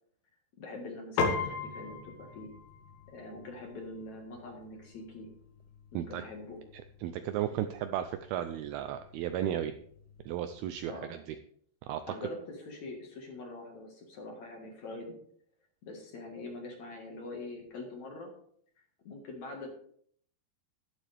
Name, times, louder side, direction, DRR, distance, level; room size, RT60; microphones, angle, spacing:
voice 1, 0.6-2.5 3.1-5.3 5.9-6.6 10.9-11.1 12.1-15.1 15.8-18.3 18.8-19.7, left 2 dB, 55° left, 1 dB, 2.4 m, -44 dB
Piano, 1.2-10.8, left 4 dB, 75° left, 3.5 m, -40 dB
voice 2, 7.0-9.8 10.3-11.2 11.9-12.0, right 11 dB, 85° right, 9 dB, 2.2 m, -34 dB
12.0 x 11.5 x 3.4 m, 0.63 s
omnidirectional pair, 4.9 m